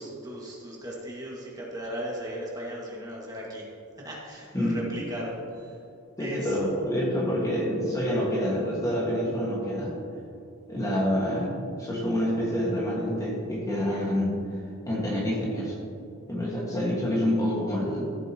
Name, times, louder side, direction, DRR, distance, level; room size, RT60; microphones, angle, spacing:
voice 1, 0.0-3.6 4.0-5.8 6.2-6.6 13.7-13.8, equal, 20° right, -4 dB, 1.9 m, -37 dB
voice 2, 6.2-9.9 10.7-14.4 14.9-15.8 16.3-18.1, equal, 15° left, -4 dB, 1.7 m, -27 dB
14.0 x 7.9 x 3.0 m, 2.7 s
head